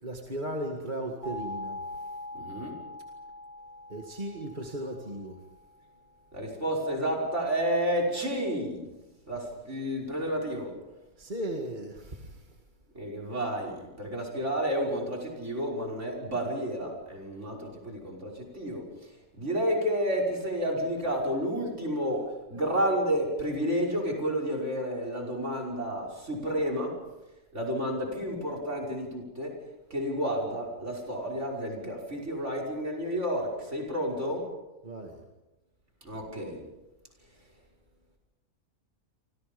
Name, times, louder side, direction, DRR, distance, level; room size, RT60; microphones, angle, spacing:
voice 1, 0.0-2.1 3.9-5.4 11.2-12.6 34.8-35.2, right 1 dB, 30° right, 1 dB, 2.3 m, -36 dB
sound 1, 1.2-6.0, left 2 dB, 45° left, 6.8 m, -42 dB
voice 2, 2.4-2.8 6.3-8.8 9.3-10.7 12.9-18.8 19.4-27.0 27.5-29.5 29.9-34.5 36.0-36.6, equal, 50° right, 2 dB, 6.0 m, -31 dB
30.0 x 25.5 x 5.4 m, 1.1 s
omnidirectional pair, 1.6 m